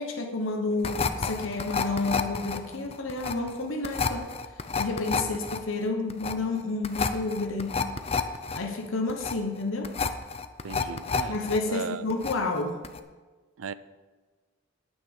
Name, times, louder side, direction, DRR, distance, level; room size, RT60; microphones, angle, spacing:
voice 1, 0.0-4.3 4.8-7.8 8.5-9.9 11.3-12.8, left 3 dB, 70° left, 4 dB, 1.0 m, -30 dB
sound 1, 0.8-11.6 11.9-12.6 12.8-13.0, left 5 dB, 30° left, 0.5 m, -30 dB
voice 2, 10.6-11.4 11.6-12.0 13.6-13.7, right 6 dB, 85° right, 15 dB, 0.5 m, -36 dB
9.3 x 9.2 x 5.3 m, 1.3 s
head